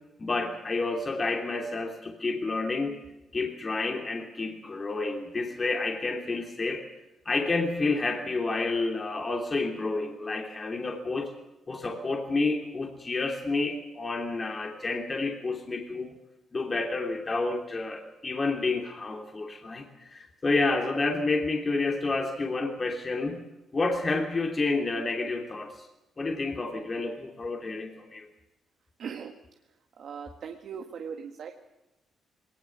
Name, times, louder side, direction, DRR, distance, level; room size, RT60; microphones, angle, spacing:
voice 1, 0.2-3.0 3.3-6.8 7.2-11.3 11.7-16.1 16.5-23.4 23.7-25.9 26.2-28.3, left 3 dB, 30° left, 2 dB, 3.0 m, -29 dB
voice 2, 29.0-29.3 30.0-31.5, right 7 dB, 60° right, 4 dB, 1.7 m, -39 dB
20.5 x 19.0 x 7.5 m, 0.99 s
cardioid pair, 90°, 0 cm